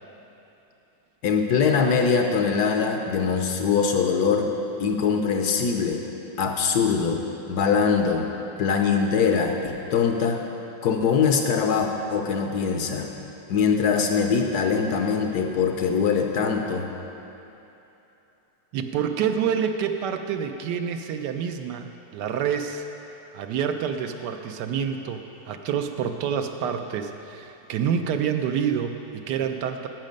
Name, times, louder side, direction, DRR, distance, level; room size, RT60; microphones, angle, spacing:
voice 1, 1.2-4.5 4.8-6.0 6.4-7.2 7.5-8.3 8.6-10.4 10.8-13.1 13.5-16.9, left 6 dB, 70° left, 3 dB, 1.1 m, -22 dB
voice 2, 18.7-22.8 23.3-29.9, right 7 dB, 75° right, 6 dB, 1.1 m, -27 dB
10.5 x 7.4 x 5.2 m, 2.9 s
omnidirectional pair, 2.0 m